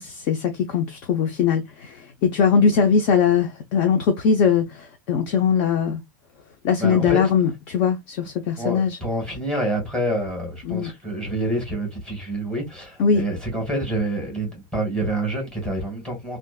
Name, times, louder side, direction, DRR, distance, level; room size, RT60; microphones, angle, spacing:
voice 1, 0.0-6.0 6.6-9.0 10.6-10.9 13.0-13.2, left 6 dB, 45° left, 0.7 m, -21 dB
voice 2, 6.8-7.2 8.6-16.4, right 1 dB, 5° left, 1.7 m, -27 dB
3.5 x 2.6 x 2.3 m
supercardioid pair, 155°, 11 cm